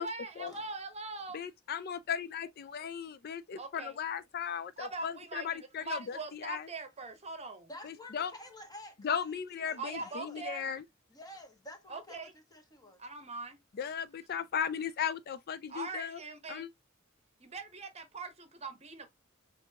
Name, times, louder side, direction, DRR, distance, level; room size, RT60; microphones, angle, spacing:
voice 1, 0.0-1.4 3.6-4.0 4.8-7.7 9.7-10.7 11.9-12.3 12.8-13.6 15.7-16.6 17.4-19.1, right 3 dB, 30° right, 1.0 m, -42 dB
voice 2, 1.3-6.2 6.4-6.6 7.8-8.3 9.0-10.8 13.8-16.1 16.5-16.7, left 7 dB, 50° left, 0.4 m, -36 dB
voice 3, 7.7-10.4 11.1-13.0, left 1 dB, 20° left, 1.3 m, -50 dB
6.7 x 2.7 x 2.8 m
head